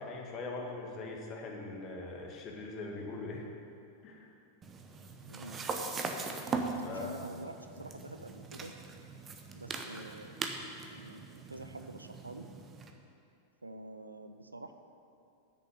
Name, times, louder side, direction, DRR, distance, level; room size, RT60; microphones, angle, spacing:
voice 1, 0.0-3.4 4.0-4.3 6.8-7.2, left 3 dB, 35° left, 0 dB, 1.9 m, -41 dB
sound 1, 4.6-12.9, right 4 dB, 20° right, 0.9 m, -40 dB
voice 2, 5.3-5.7 6.9-8.7 9.5-10.4 10.9-12.5 13.6-14.7, right 2 dB, 80° right, 8 dB, 0.5 m, -47 dB
8.3 x 7.0 x 8.1 m, 2.5 s
figure-of-eight pair, 90°, 0 cm